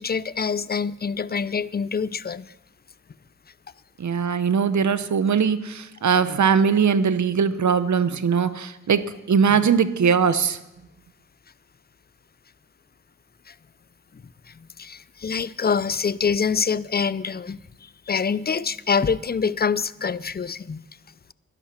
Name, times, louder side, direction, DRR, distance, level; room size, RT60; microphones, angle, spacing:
voice 1, 0.0-2.5 9.5-9.6 13.5-13.6 14.5-20.8, left 6 dB, 30° left, 0.5 m, -26 dB
voice 2, 4.0-10.6, right 6 dB, 65° right, 0.9 m, -21 dB
11.5 x 11.5 x 5.9 m
cardioid pair, 40°, 31 cm